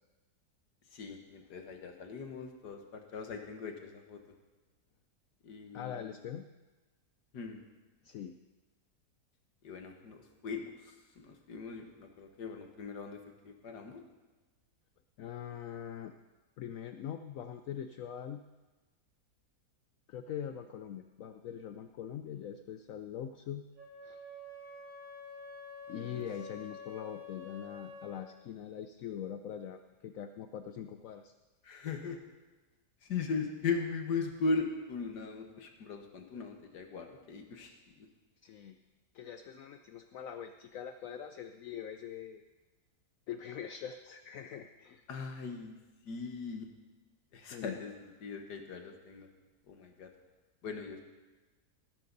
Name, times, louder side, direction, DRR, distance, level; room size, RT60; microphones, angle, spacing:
voice 1, 0.9-4.2 5.4-6.0 7.3-7.6 9.6-14.0 25.9-26.2 31.6-32.2 33.0-38.1 45.1-45.8 46.1-46.7 47.3-49.3 49.7-50.1 50.6-51.0, left 4 dB, 90° left, 4 dB, 2.0 m, -39 dB
voice 2, 5.7-6.5 8.0-8.4 15.2-16.1 16.6-18.4 20.1-23.6 24.0-24.2 25.9-31.3 38.4-38.8 39.1-42.4 43.3-45.0 47.5-47.8, left 9 dB, 65° left, 8 dB, 0.9 m, -43 dB
Wind instrument woodwind instrument, 23.8-28.3, left 4 dB, 75° right, 3.7 m, -48 dB
19.0 x 10.5 x 4.0 m, 1.2 s
omnidirectional pair, 1.7 m